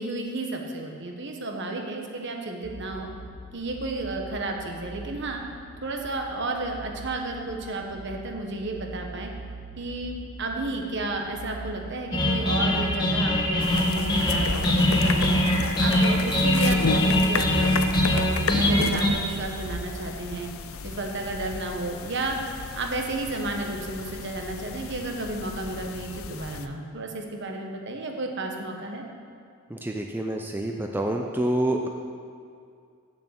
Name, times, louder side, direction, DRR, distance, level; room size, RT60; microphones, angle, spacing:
voice 1, 0.0-3.1 3.5-5.4 5.8-9.3 9.8-15.4 15.8-17.7 18.1-20.5 20.8-22.4 22.7-29.0, right 2 dB, 60° right, 2 dB, 1.4 m, -32 dB
sound 1, 2.6-19.7, right 2 dB, 40° right, 0.9 m, -42 dB
sound 2, 12.1-19.1, left 1 dB, 20° left, 1.5 m, -22 dB
sound 3, 13.6-26.7, left 5 dB, 85° left, 0.6 m, -33 dB
voice 2, 29.7-31.9, right 1 dB, 10° right, 2 dB, 0.5 m, -27 dB
8.4 x 7.3 x 8.0 m, 2.4 s
head